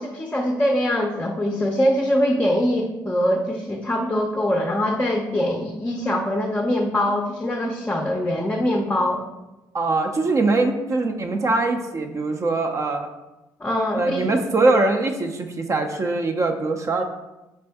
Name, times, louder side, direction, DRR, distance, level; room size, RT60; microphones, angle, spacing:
voice 1, 0.0-9.2 13.6-14.4, left 1 dB, 15° left, 1 dB, 0.5 m, -23 dB
voice 2, 9.7-13.1 13.9-17.0, right 3 dB, 35° right, 5 dB, 0.5 m, -22 dB
4.3 x 2.5 x 3.4 m, 1.0 s
supercardioid pair, 65°, 9 cm